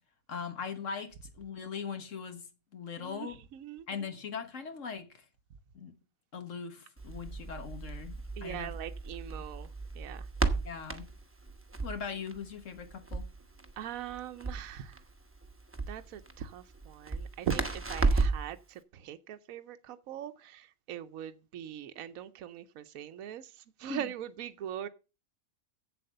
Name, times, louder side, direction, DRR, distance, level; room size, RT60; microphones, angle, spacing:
voice 1, 0.3-2.5 2.7-3.4 3.9-5.2 5.7-5.9 6.3-8.8 10.6-11.1 11.8-13.3 23.9-24.1, left 6 dB, 65° left, 1.7 m, -40 dB
voice 2, 3.0-3.8 8.4-9.7 9.9-10.3 13.8-15.0 15.9-23.5 23.8-24.9, right 10 dB, 80° right, 1.1 m, -41 dB
Crackle, 7.0-18.5, right 3 dB, 10° right, 0.9 m, -34 dB
7.9 x 7.7 x 6.6 m
omnidirectional pair, 1.4 m